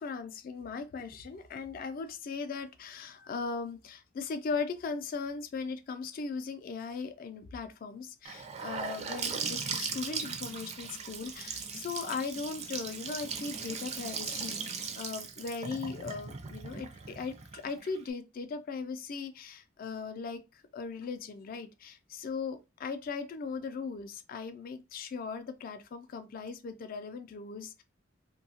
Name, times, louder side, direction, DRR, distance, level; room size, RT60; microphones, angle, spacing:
voice 1, 0.0-27.8, left 5 dB, 50° left, 0.4 m, -38 dB
Gurgling / Sink (filling or washing) / Bathtub (filling or washing), 8.3-18.1, right 5 dB, 35° right, 0.4 m, -38 dB
2.7 x 2.2 x 2.7 m
head